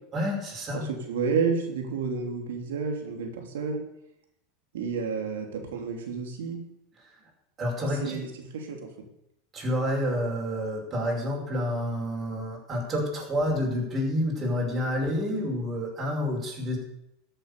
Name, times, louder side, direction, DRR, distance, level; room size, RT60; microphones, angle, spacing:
voice 1, 0.1-0.8 7.6-8.2 9.5-16.8, left 1 dB, 30° right, -1 dB, 5.5 m, -29 dB
voice 2, 0.7-3.8 4.7-6.6 8.0-8.3 8.5-8.9, right 5 dB, 90° right, 3 dB, 3.3 m, -30 dB
14.5 x 7.9 x 6.9 m, 0.80 s
supercardioid pair, 120°, 0 cm